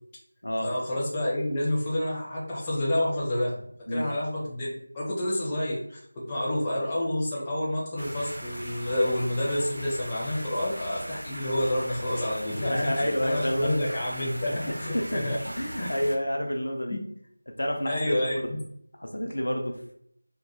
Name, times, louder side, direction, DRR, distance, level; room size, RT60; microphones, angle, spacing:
voice 1, 0.6-4.7 4.9-6.0 6.3-15.4 15.8-15.9 17.9-18.3, left 1 dB, 15° left, -6 dB, 0.5 m, -29 dB
sound 1, 8.0-16.2, right 1 dB, 75° right, 0.6 m, -39 dB
voice 2, 12.5-13.8 14.5-17.0 17.6-18.1 18.5-18.6 19.0-19.9, equal, 70° left, 2 dB, 0.5 m, -29 dB
2.2 x 2.1 x 2.8 m, 0.69 s
figure-of-eight pair, 170°, 0 cm